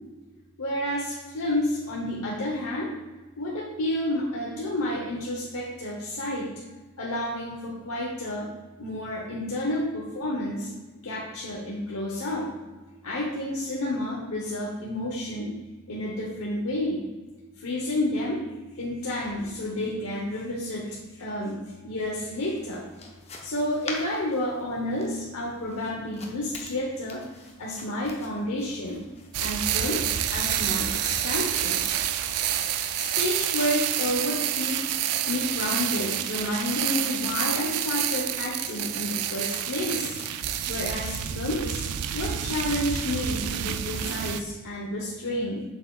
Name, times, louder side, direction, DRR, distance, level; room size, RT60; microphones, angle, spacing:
voice 1, 0.6-2.9 3.4-6.5 7.0-8.5 8.8-10.7 11.0-12.5 13.0-15.6 15.9-17.0 17.6-18.4 18.7-22.8 23.4-27.3 27.6-29.0 29.4-31.9 32.6-34.8 35.3-40.2 40.7-41.8 42.1-45.6, left 1 dB, 65° left, -3 dB, 1.0 m, -30 dB
sound 1, 22.2-40.3, left 3 dB, 30° left, 0.8 m, -47 dB
sound 2, 29.3-44.4, right 10 dB, 90° right, 0.4 m, -28 dB
7.7 x 6.5 x 2.4 m, 1.2 s
head